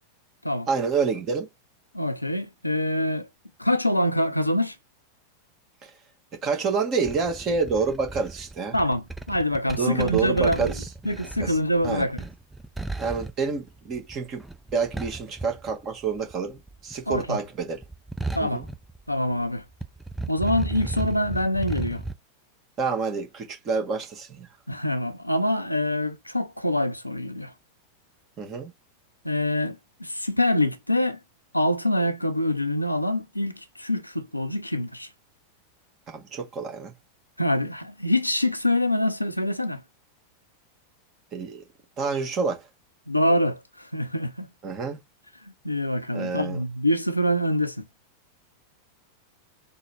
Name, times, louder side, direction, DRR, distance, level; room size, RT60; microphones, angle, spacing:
voice 1, 0.7-1.5 6.4-8.8 9.8-10.9 11.4-11.6 11.8-12.0 13.0-14.4 14.7-17.8 18.4-18.6 22.8-24.5 28.4-28.7 36.1-36.9 41.3-41.6 42.0-42.6 44.6-45.0 46.1-46.6, right 5 dB, 35° right, 1.5 m, -28 dB
voice 2, 1.9-3.3 3.6-4.8 8.7-10.7 11.0-12.2 17.1-17.4 18.3-18.6 19.1-19.6 20.3-22.0 24.7-27.5 29.2-31.2 31.5-35.1 37.4-39.8 43.1-44.5 45.4-47.9, left 1 dB, 85° left, 0.6 m, -25 dB
sound 1, 7.0-16.3 16.6-19.5 19.7-22.1, right 2 dB, 5° right, 0.5 m, -35 dB
3.8 x 2.1 x 4.3 m
figure-of-eight pair, 90°, 0 cm